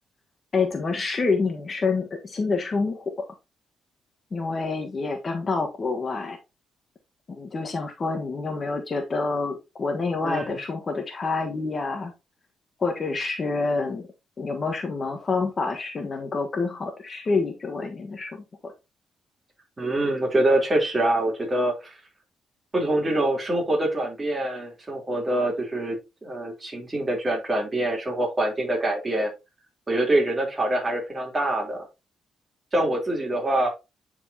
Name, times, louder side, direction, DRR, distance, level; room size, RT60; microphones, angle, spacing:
voice 1, 0.5-3.3 4.3-6.4 7.3-12.1 12.8-14.1 14.4-18.7, left 4 dB, 40° left, 1.4 m, -27 dB
voice 2, 10.2-10.6 19.8-21.9 22.7-26.0 26.2-29.3 29.9-31.9 32.7-33.7, right 1 dB, 25° right, 3.5 m, -25 dB
9.2 x 4.5 x 2.8 m
cardioid pair, 100°, 0 cm